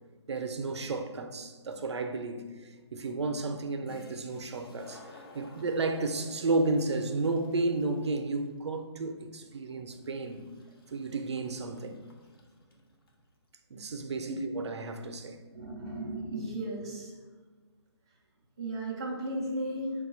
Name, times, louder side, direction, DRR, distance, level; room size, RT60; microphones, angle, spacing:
voice 1, 0.3-10.4 10.9-12.0 13.7-15.4, right 3 dB, 75° right, 0.5 m, -32 dB
Toilet flush, 3.8-13.2, left 1 dB, 55° left, 0.7 m, -55 dB
voice 2, 15.5-17.1 18.6-20.0, right 1 dB, 10° right, 0.4 m, -35 dB
4.6 x 2.3 x 4.3 m
hypercardioid pair, 175°, 14 cm